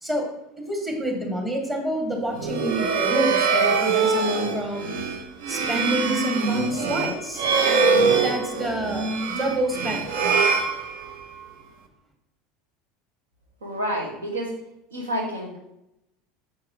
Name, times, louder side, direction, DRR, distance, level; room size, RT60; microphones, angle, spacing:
voice 1, 0.6-4.9 5.5-7.4 8.1-10.6, equal, 20° right, 0 dB, 2.7 m, -28 dB
sound 1, 2.3-11.4, right 4 dB, 60° right, 0.9 m, -23 dB
voice 2, 13.6-14.5 14.9-15.6, equal, 75° right, 0 dB, 2.1 m, -29 dB
9.3 x 7.1 x 3.3 m, 0.86 s
figure-of-eight pair, 75°, 0 cm